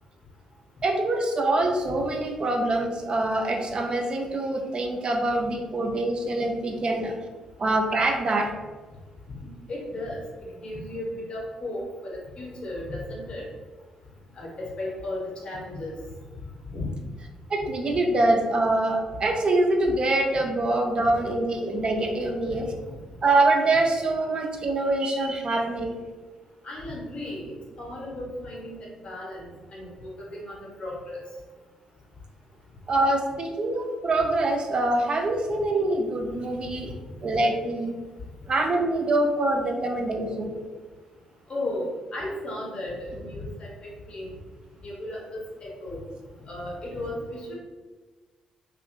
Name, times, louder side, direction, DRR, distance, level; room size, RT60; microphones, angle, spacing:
voice 1, 0.8-7.2 7.6-8.5 17.5-22.7 23.2-26.0 32.9-36.9 37.2-37.9 38.5-40.5, right 2 dB, 35° right, 3 dB, 0.4 m, -24 dB
voice 2, 9.3-10.2 10.6-13.4 14.4-15.9 16.7-16.9 26.6-28.8 29.0-31.2 41.5-44.3 44.8-46.0 46.5-47.5, left 1 dB, 40° left, -3 dB, 0.7 m, -35 dB
2.6 x 2.5 x 2.4 m, 1.3 s
figure-of-eight pair, 40°, 3 cm